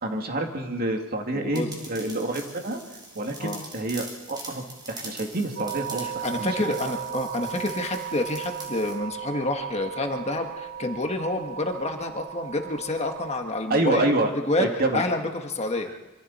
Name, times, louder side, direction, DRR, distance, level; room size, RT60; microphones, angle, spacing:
voice 1, 0.0-2.8 3.1-6.8 13.7-14.3 14.6-15.0, right 2 dB, 45° right, 2 dB, 2.5 m, -28 dB
voice 2, 1.3-1.7 3.4-3.6 6.0-14.1 14.5-15.9, left 2 dB, 30° left, 4 dB, 1.6 m, -28 dB
sound 1, 1.5-9.0, right 2 dB, 20° right, 4.0 m, -43 dB
sound 2, 5.6-13.4, right 9 dB, 75° right, 2.1 m, -36 dB
26.0 x 24.5 x 4.3 m, 1.1 s
head